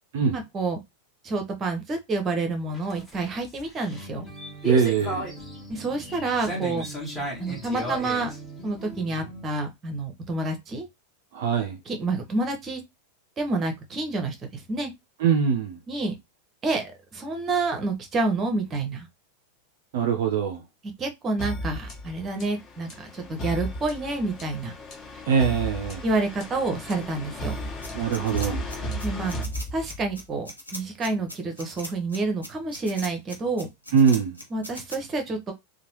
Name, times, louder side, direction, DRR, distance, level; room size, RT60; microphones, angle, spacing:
voice 1, 0.3-0.8 1.2-4.3 5.7-6.9 7.4-8.4 8.6-10.9 11.9-12.8 13.4-14.9 15.9-16.1 16.6-16.8 17.1-19.1 21.0-24.7 26.0-27.5 29.0-29.4 29.7-33.7 34.5-35.5, right 3 dB, 25° right, 0.7 m, -28 dB
sound 1, 2.7-9.5, right 1 dB, 10° left, 1.1 m, -35 dB
voice 2, 4.6-5.3 11.3-11.8 15.2-15.8 19.9-20.6 25.3-26.0 27.9-28.7 33.9-34.4, right 6 dB, 55° right, 0.4 m, -22 dB
sound 2, 21.4-30.2, equal, 35° left, 1.2 m, -35 dB
sound 3, 27.8-35.0, left 1 dB, 85° left, 0.8 m, -39 dB
2.9 x 2.1 x 3.0 m
figure-of-eight pair, 90°, 0 cm